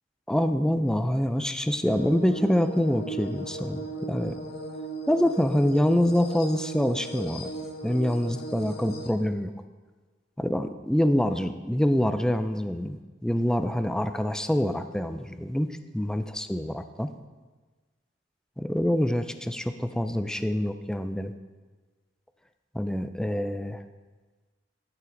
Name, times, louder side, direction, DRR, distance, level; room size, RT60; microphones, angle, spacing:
voice 1, 0.3-4.4 5.1-7.5 7.8-9.5 10.4-15.7 15.9-17.1 18.6-21.3 22.7-23.8, equal, 5° left, 9 dB, 0.4 m, -26 dB
sound 1, 1.9-9.1, right 2 dB, 60° left, 0.9 m, -37 dB
12.5 x 6.0 x 3.8 m, 1.3 s
head